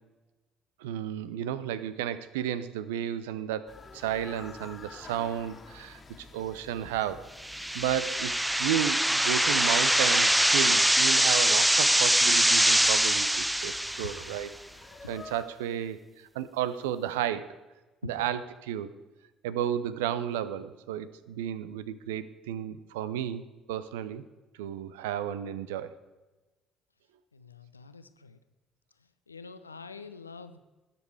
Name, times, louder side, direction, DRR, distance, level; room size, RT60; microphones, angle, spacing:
voice 1, 0.8-7.3 7.7-14.5 15.1-16.0 16.3-17.5 18.0-18.9 19.4-24.2 24.6-25.9, right 10 dB, 70° right, 15 dB, 0.5 m, -33 dB
sound 1, 3.7-15.5, left 4 dB, 30° left, 1.7 m, -50 dB
sound 2, 7.4-14.4, right 1 dB, 5° right, 0.4 m, -23 dB
voice 2, 27.3-28.4 29.3-30.6, left 5 dB, 85° left, 11 dB, 0.5 m, -45 dB
19.5 x 6.9 x 4.7 m, 1.2 s
figure-of-eight pair, 50°, 0 cm